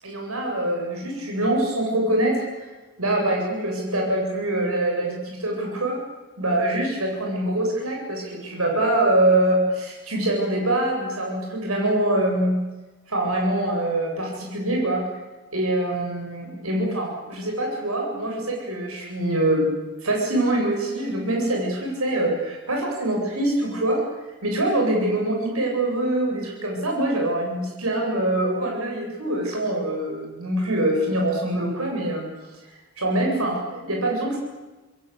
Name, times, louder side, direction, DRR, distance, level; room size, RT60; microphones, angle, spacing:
voice 1, 0.0-6.0 6.4-12.6 13.1-15.0 15.5-19.7 20.0-24.0 24.4-32.3 32.7-34.4, right 1 dB, 85° right, 0 dB, 7.9 m, -24 dB
28.0 x 22.0 x 8.5 m, 1.2 s
head